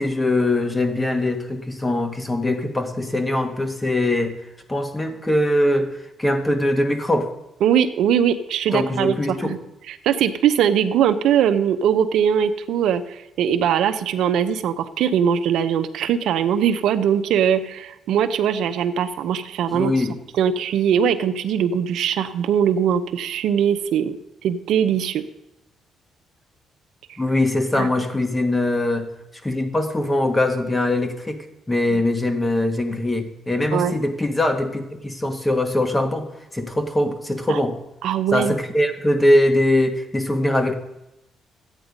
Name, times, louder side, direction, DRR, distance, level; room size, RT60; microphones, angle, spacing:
voice 1, 0.0-4.4 4.7-7.3 8.7-9.6 19.7-20.1 27.2-29.1 29.4-37.8 38.3-40.7, left 1 dB, 15° left, 6 dB, 1.5 m, -22 dB
voice 2, 7.6-9.6 9.9-20.1 20.4-24.2 24.4-25.2 27.8-27.9 31.9-32.0 33.7-33.9 37.5-37.6 38.0-38.5, right 8 dB, 80° right, 9 dB, 0.7 m, -21 dB
12.5 x 9.1 x 5.2 m, 0.91 s
cardioid pair, 90°, 0 cm